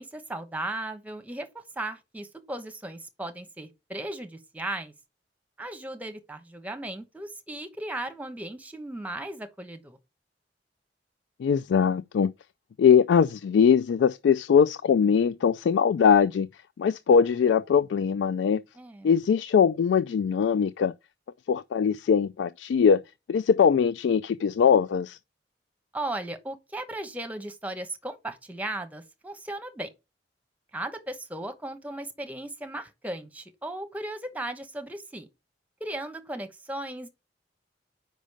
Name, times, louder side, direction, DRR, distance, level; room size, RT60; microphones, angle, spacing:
voice 1, 0.0-4.9 5.6-10.0 18.7-19.1 25.9-29.9 30.7-35.3 35.8-37.1, right 1 dB, 10° right, 1.0 m, -36 dB
voice 2, 11.4-12.3 12.8-16.5 16.8-18.6 19.0-20.9 21.5-23.0 23.3-25.2, left 7 dB, 85° left, 0.3 m, -21 dB
5.2 x 5.1 x 6.4 m
head